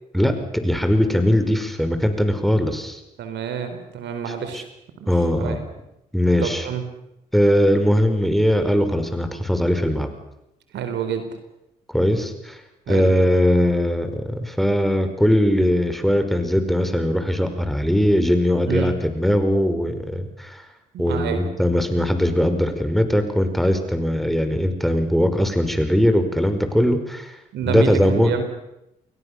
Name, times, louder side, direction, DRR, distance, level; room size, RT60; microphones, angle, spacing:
voice 1, 0.1-3.0 4.5-4.6 5.1-5.6 6.1-6.7 7.3-10.1 11.9-12.6 12.9-20.6 21.0-27.4 27.7-28.3, equal, ahead, 8 dB, 5.3 m, -20 dB
voice 2, 3.2-4.6 5.0-5.6 6.4-6.8 10.7-11.3 12.9-13.1 18.7-18.9 20.9-21.4 27.5-28.4, right 8 dB, 70° right, 8 dB, 4.2 m, -28 dB
29.5 x 23.0 x 6.9 m, 0.88 s
hypercardioid pair, 55°, 19 cm